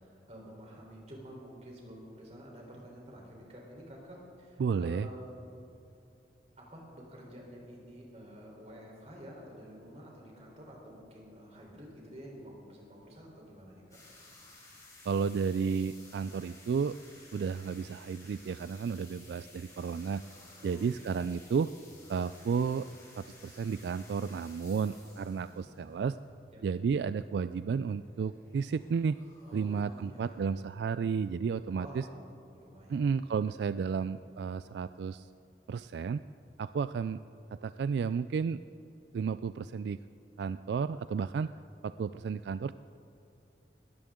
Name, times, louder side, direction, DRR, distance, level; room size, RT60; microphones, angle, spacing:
voice 1, 0.0-5.3 6.6-14.0 20.6-21.0 26.5-26.6 29.4-30.7 31.7-33.1, equal, 35° right, -2 dB, 3.8 m, -49 dB
voice 2, 4.6-5.1 15.1-17.0 17.3-20.2 20.6-21.7 22.1-22.9 23.2-26.2 26.6-29.2 29.5-32.0 32.9-35.3 35.7-36.2 36.6-37.2 37.5-38.6 39.1-40.0 40.4-41.5 41.8-42.7, right 6 dB, 75° right, 13 dB, 0.3 m, -32 dB
sound 1, 13.9-30.4, left 2 dB, 20° left, 4.2 m, -56 dB
21.0 x 16.0 x 3.7 m, 2.7 s
head